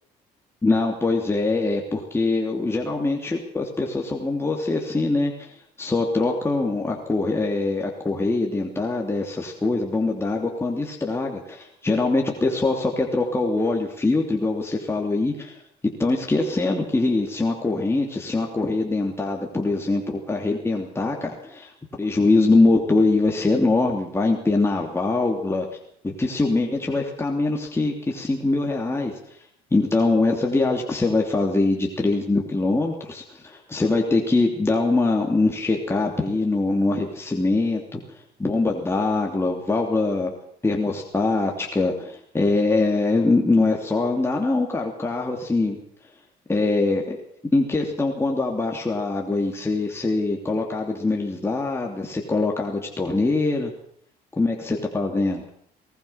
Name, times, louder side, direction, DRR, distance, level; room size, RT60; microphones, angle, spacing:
voice 1, 0.6-5.5 5.8-15.6 16.0-20.0 20.3-21.7 22.0-25.7 26.0-29.1 29.7-40.3 40.6-45.8 46.5-47.2 47.5-53.7 54.4-55.4, left 3 dB, 15° left, 1 dB, 3.1 m, -23 dB
22.5 x 19.5 x 5.9 m, 0.64 s
cardioid pair, 110°, 17 cm